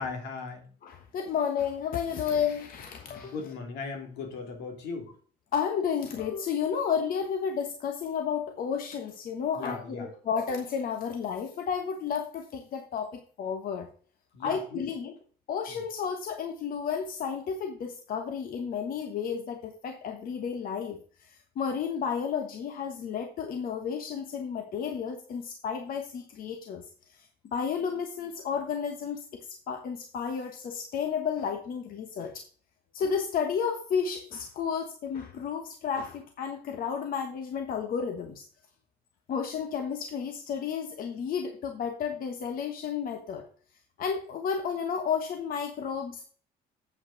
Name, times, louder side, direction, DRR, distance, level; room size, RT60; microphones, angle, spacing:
voice 1, 0.0-0.7 3.1-5.1 9.6-10.1 14.3-14.9 15.7-15.8, left 4 dB, 85° left, 3 dB, 2.9 m, -38 dB
voice 2, 0.8-3.3 5.5-13.9 14.4-15.1 15.5-21.0 21.6-26.8 27.2-27.3 27.5-32.4 32.9-38.4 39.3-43.4 44.0-46.3, left 7 dB, 60° left, 5 dB, 1.3 m, -32 dB
8.5 x 5.5 x 5.0 m, 0.43 s
cardioid pair, 110°, 17 cm